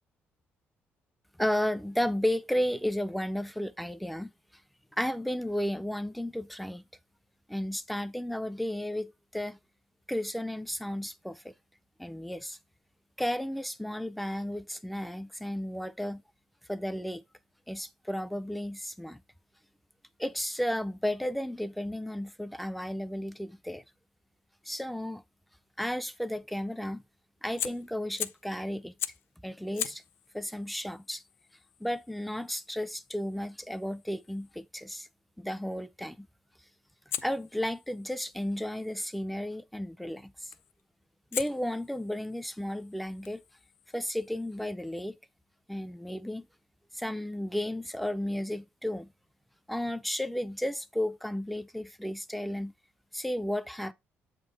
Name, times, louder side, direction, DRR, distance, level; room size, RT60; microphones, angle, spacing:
voice 1, 1.4-4.3 5.0-6.8 7.5-9.6 10.1-11.5 12.0-12.6 13.2-16.2 16.7-17.2 17.7-19.2 20.2-23.8 24.6-25.2 25.8-27.0 27.4-28.9 29.4-30.0 30.3-31.2 31.8-35.1 35.4-36.3 37.2-40.5 41.3-43.4 43.9-45.2 45.7-46.5 46.9-49.1 49.7-52.7 53.1-53.9, left 1 dB, ahead, 0.4 m, -33 dB
Fire, 27.6-28.5 29.0-29.3 29.7-34.7 37.1-39.2 40.5-40.8 41.3-44.7, left 10 dB, 65° left, 0.4 m, -42 dB
7.5 x 3.7 x 3.3 m
cardioid pair, 140°, 4 cm